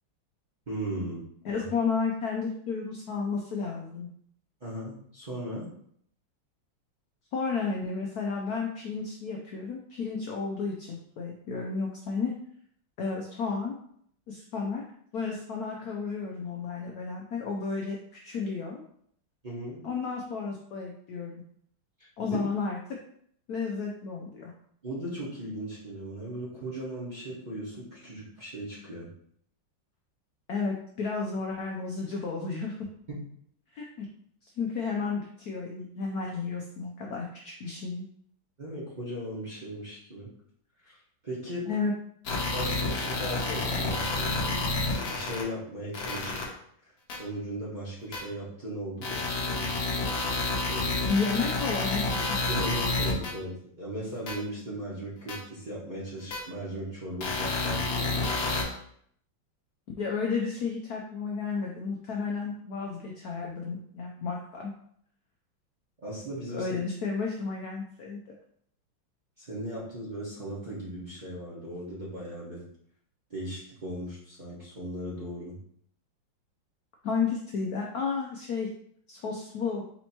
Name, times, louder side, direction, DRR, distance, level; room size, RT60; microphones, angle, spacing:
voice 1, 0.7-1.2 1.6-1.7 4.6-5.7 19.4-19.8 22.0-22.4 24.8-29.1 33.1-33.2 38.6-40.3 40.8-41.0 41.2-41.7 42.5-46.4 46.8-49.2 49.5-49.8 50.5-50.8 52.5-58.1 66.0-66.7 69.4-72.6 73.3-75.5, right 1 dB, 30° right, -8 dB, 1.0 m, -37 dB
voice 2, 1.4-4.1 7.3-12.4 13.0-13.8 14.3-14.8 15.1-18.0 18.2-18.8 19.8-21.3 22.2-22.8 23.5-24.5 30.5-32.8 33.7-34.0 34.6-38.1 41.7-41.9 51.1-52.4 60.0-64.7 66.5-68.4 77.0-78.7 79.1-79.8, left 5 dB, 70° left, 0 dB, 0.9 m, -32 dB
sound 1, 42.3-45.4 45.9-46.4 47.1-47.2 48.1-48.2 49.0-53.3 54.3-54.4 55.3-55.4 56.3-56.4 57.2-58.6, left 3 dB, 55° left, 1.4 m, -29 dB
4.3 x 2.9 x 4.2 m, 0.66 s
omnidirectional pair, 2.2 m